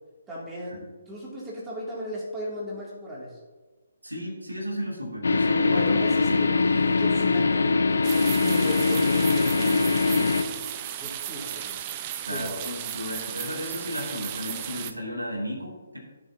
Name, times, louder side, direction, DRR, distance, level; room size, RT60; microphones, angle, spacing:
voice 1, 0.3-3.3 5.7-6.6 6.9-10.6 11.0-11.8 12.3-12.7, equal, 10° right, -6 dB, 2.8 m, -37 dB
voice 2, 4.0-6.4 12.3-16.0, equal, 85° right, -2 dB, 2.9 m, -34 dB
sound 1, 5.2-10.4, left 3 dB, 60° left, 0.7 m, -22 dB
sound 2, 8.0-14.9, right 11 dB, 25° right, 0.5 m, -35 dB
15.5 x 6.4 x 2.9 m, 1.3 s
figure-of-eight pair, 140°, 0 cm